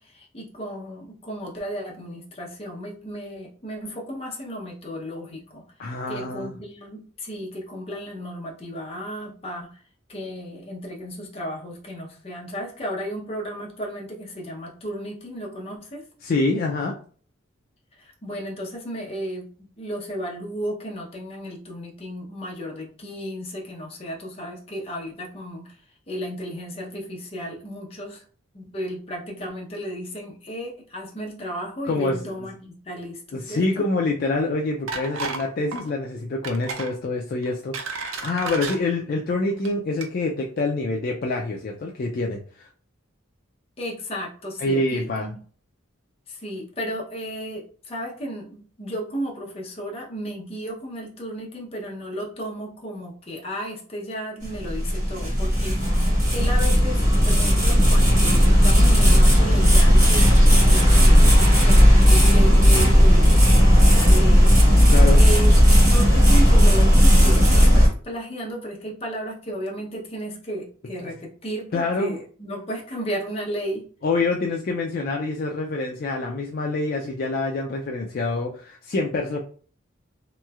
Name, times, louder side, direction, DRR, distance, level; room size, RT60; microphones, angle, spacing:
voice 1, 0.0-5.6 6.1-9.8 10.1-16.0 18.0-25.8 26.1-28.2 28.5-33.6 43.8-45.3 46.3-55.8 56.1-64.5 65.1-73.8, equal, 30° left, -1 dB, 0.7 m, -34 dB
voice 2, 5.8-6.5 16.2-17.0 31.8-32.3 33.3-42.7 44.6-45.3 64.9-65.2 71.7-72.2 74.0-79.4, left 3 dB, 45° left, 0 dB, 0.3 m, -26 dB
sound 1, 34.9-35.5 35.7-35.9 36.4-36.9 37.4-38.8 39.5-39.7 40.0-40.1, right 4 dB, 90° right, 0.6 m, -32 dB
sound 2, 54.4-67.9, equal, 35° right, 1.4 m, -15 dB
3.0 x 3.0 x 2.3 m, 0.43 s
head